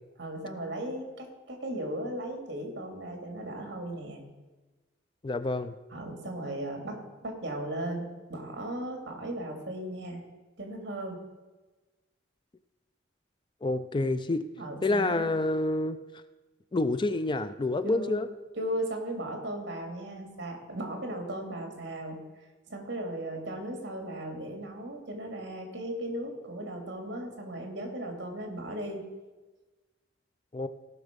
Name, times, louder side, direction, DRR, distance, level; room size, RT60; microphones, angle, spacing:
voice 1, 0.2-4.2 5.9-10.2 10.6-11.2 14.6-15.3 17.8-18.3 18.6-22.2 22.7-29.0, right 1 dB, 65° right, 2 dB, 2.6 m, -36 dB
voice 2, 5.2-5.7 13.6-14.4 14.8-16.0 16.7-18.3 30.5-30.7, left 2 dB, 25° left, 11 dB, 0.4 m, -28 dB
17.0 x 6.0 x 5.3 m, 1.2 s
head